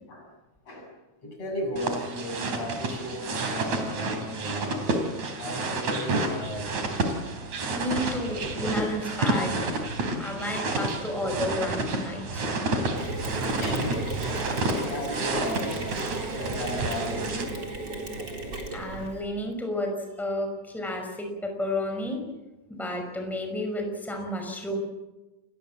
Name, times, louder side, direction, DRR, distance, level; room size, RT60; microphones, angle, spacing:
voice 1, 0.7-5.0 5.4-7.0 8.3-8.4 11.1-11.6 13.6-14.2 14.9-16.0 16.4-17.6, equal, 55° left, 2 dB, 8.7 m, -35 dB
sound 1, 1.8-17.4, right 2 dB, 70° right, 4.9 m, -30 dB
voice 2, 7.7-9.8 10.2-12.4 18.7-22.2 22.7-24.8, left 1 dB, ahead, 3 dB, 5.7 m, -31 dB
Mechanisms, 13.0-19.2, right 2 dB, 35° right, 4.6 m, -35 dB
30.0 x 22.0 x 7.6 m, 1.1 s
omnidirectional pair, 3.4 m